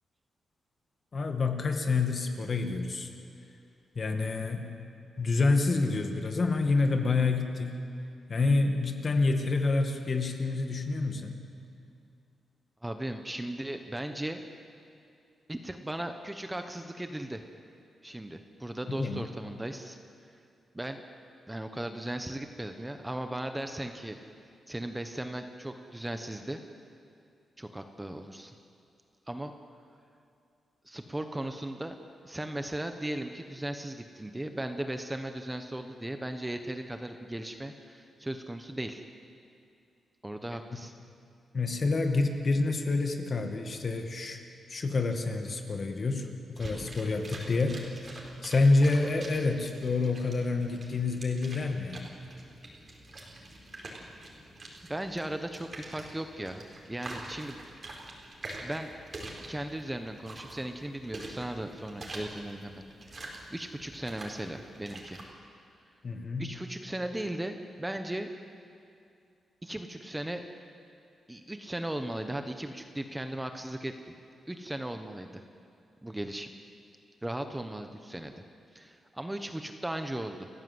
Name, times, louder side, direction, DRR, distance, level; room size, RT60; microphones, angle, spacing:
voice 1, 1.1-3.1 3.9-4.7 5.2-7.8 8.3-11.4 18.9-19.2 41.5-44.4 44.7-46.3 46.6-47.8 48.4-52.1 66.0-66.5, left 3 dB, 40° left, 5 dB, 2.1 m, -28 dB
voice 2, 12.8-14.4 15.5-17.4 18.0-20.0 20.3-20.4 20.7-21.0 21.5-24.2 24.7-26.6 27.6-28.5 29.3-29.5 30.8-31.9 32.2-39.0 40.2-40.9 54.9-57.6 58.6-58.9 59.5-65.2 66.4-68.3 69.6-70.4 71.3-74.1 74.5-75.4 76.0-76.5 77.2-78.4 78.7-80.5, right 1 dB, 10° right, 6 dB, 1.0 m, -37 dB
sound 1, 46.5-65.3, right 2 dB, 30° right, 4.2 m, -46 dB
30.0 x 15.0 x 7.9 m, 2.5 s
wide cardioid pair, 135°, 0 cm